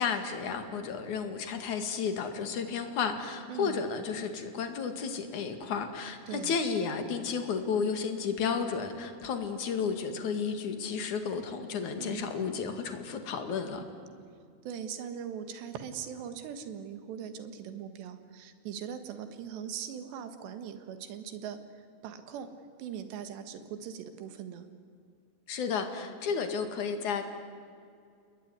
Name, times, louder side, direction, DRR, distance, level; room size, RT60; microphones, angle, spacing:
voice 1, 0.0-13.8 25.5-27.3, left 6 dB, 50° left, 7 dB, 3.0 m, -32 dB
voice 2, 3.5-3.8 6.3-6.6 12.0-12.3 14.6-22.5 22.8-24.7, right 8 dB, 75° right, 9 dB, 3.8 m, -40 dB
28.5 x 21.0 x 9.6 m, 2.4 s
omnidirectional pair, 5.0 m